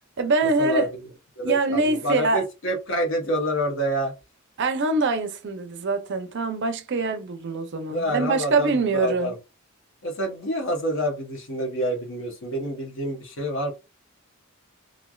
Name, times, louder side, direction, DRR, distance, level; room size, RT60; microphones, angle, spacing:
voice 1, 0.2-0.9 1.4-2.4 4.6-9.3, right 3 dB, 55° right, 0.5 m, -24 dB
voice 2, 1.4-4.1 7.9-9.4 10.0-13.7, equal, 60° left, 1.0 m, -27 dB
3.2 x 2.5 x 2.3 m
head